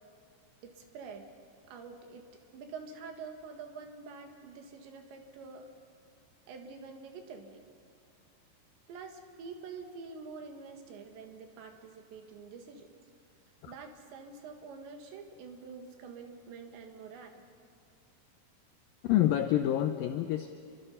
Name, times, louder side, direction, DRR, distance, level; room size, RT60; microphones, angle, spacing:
voice 1, 0.6-1.4 1.7-2.2 2.5-5.7 6.5-7.6 8.9-12.9 13.7-17.4, right 5 dB, 85° right, 4 dB, 4.1 m, -46 dB
voice 2, 19.0-20.5, left 12 dB, 85° left, 7 dB, 2.0 m, -27 dB
29.0 x 24.5 x 5.6 m, 2.4 s
omnidirectional pair, 5.0 m